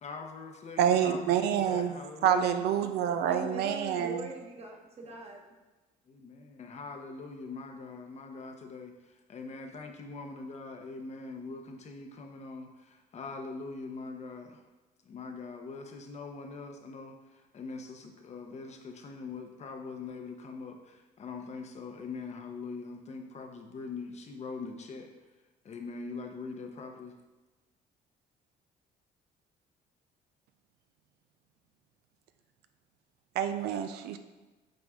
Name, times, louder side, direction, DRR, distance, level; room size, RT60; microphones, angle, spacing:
voice 1, 0.0-2.6 6.1-8.9 9.3-14.6 15.1-17.2 17.5-25.1 25.6-27.1, left 4 dB, 40° left, 4 dB, 0.8 m, -42 dB
voice 2, 0.8-4.3 33.4-34.2, right 9 dB, 75° right, 9 dB, 0.5 m, -27 dB
voice 3, 3.3-5.4, right 2 dB, 35° right, 1 dB, 1.2 m, -41 dB
7.7 x 4.0 x 3.6 m, 1.2 s
cardioid pair, 110°, 17 cm